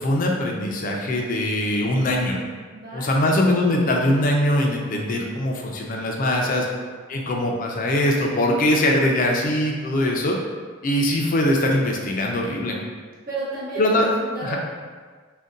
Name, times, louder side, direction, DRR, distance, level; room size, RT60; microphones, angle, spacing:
voice 1, 0.0-2.4 2.9-6.7 7.1-10.4 10.8-12.8 13.8-14.1 14.4-14.6, left 1 dB, 45° left, 0 dB, 0.4 m, -22 dB
voice 2, 2.7-3.5 13.3-14.6, right 3 dB, 50° right, -6 dB, 0.8 m, -33 dB
2.6 x 2.2 x 3.7 m, 1.5 s
head